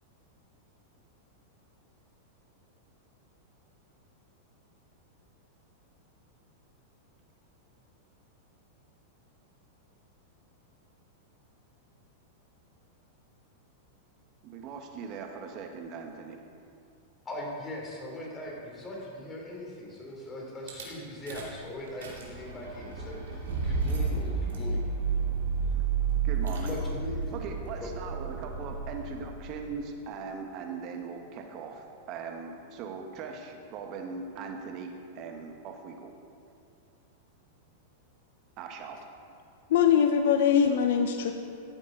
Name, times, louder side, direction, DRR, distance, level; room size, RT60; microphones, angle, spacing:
voice 1, 14.4-16.4 26.2-26.7 27.3-36.1 38.6-39.0, right 5 dB, 45° right, 3 dB, 1.5 m, -40 dB
voice 2, 17.2-24.8 26.6-27.3 27.8-27.9, left 1 dB, 20° left, -2 dB, 3.1 m, -40 dB
Rattle / Car / Engine starting, 20.7-20.8 21.3-21.6 21.9-29.6, right 5 dB, 80° right, 2.7 m, -31 dB
voice 3, 39.7-41.3, left 8 dB, 70° left, 5 dB, 0.7 m, -22 dB
14.5 x 8.2 x 4.0 m, 2.4 s
hypercardioid pair, 120°, 0 cm